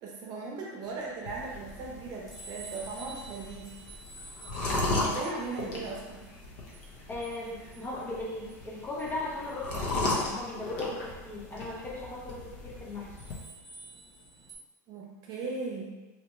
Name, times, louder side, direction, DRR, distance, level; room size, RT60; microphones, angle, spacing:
voice 1, 0.0-3.7 4.6-6.2 14.9-15.9, right 3 dB, 45° right, -2 dB, 0.7 m, -38 dB
sound 1, 0.8-14.6, right 2 dB, ahead, 1.0 m, -52 dB
sound 2, 1.3-13.3, left 2 dB, 55° left, 0.7 m, -36 dB
voice 2, 7.1-13.2, left 2 dB, 20° left, -4 dB, 0.6 m, -38 dB
2.9 x 2.1 x 3.0 m, 1.2 s
supercardioid pair, 130°, 9 cm